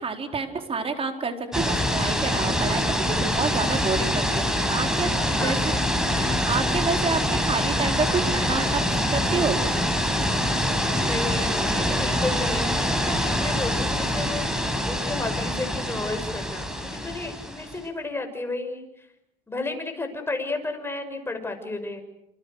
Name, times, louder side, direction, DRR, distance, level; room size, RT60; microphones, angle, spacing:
voice 1, 0.0-5.7 6.1-9.6, right 4 dB, 35° right, 4 dB, 4.5 m, -29 dB
sound 1, 1.5-17.8, equal, 5° right, 5.9 m, -25 dB
voice 2, 5.1-6.2 11.0-19.1 19.5-22.0, left 3 dB, 15° left, 5 dB, 6.3 m, -33 dB
28.5 x 28.0 x 6.7 m, 0.82 s
cardioid pair, 110°, 17 cm